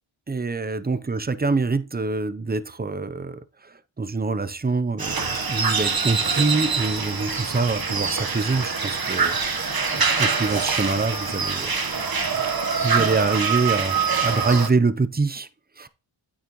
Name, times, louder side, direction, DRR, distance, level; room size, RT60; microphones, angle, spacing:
voice 1, 0.3-11.7 12.4-12.5 12.8-15.5 15.8-15.9, right 3 dB, 20° right, 0.6 m, -25 dB
sound 1, 5.0-14.7, right 5 dB, 45° right, 1.2 m, -24 dB
9.0 x 6.4 x 3.0 m
cardioid pair, 40°, 50 cm